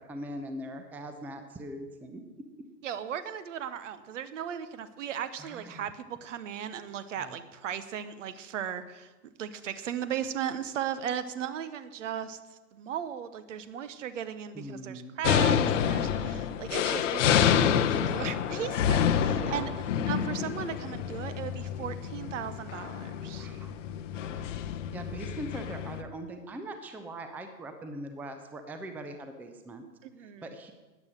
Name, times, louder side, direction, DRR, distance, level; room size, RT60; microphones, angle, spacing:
voice 1, 0.0-2.7 5.4-5.9 7.2-7.4 14.5-15.1 19.3-19.7 23.4-23.7 24.3-24.6 24.9-29.8 30.2-30.7, right 1 dB, 5° right, 7 dB, 0.6 m, -41 dB
voice 2, 2.8-12.4 12.7-19.7 20.1-23.5 30.0-30.5, right 9 dB, 50° right, 13 dB, 1.0 m, -36 dB
sound 1, 15.2-26.0, left 8 dB, 50° left, 0.9 m, -28 dB
13.5 x 9.8 x 6.3 m, 1.2 s
figure-of-eight pair, 100°, 46 cm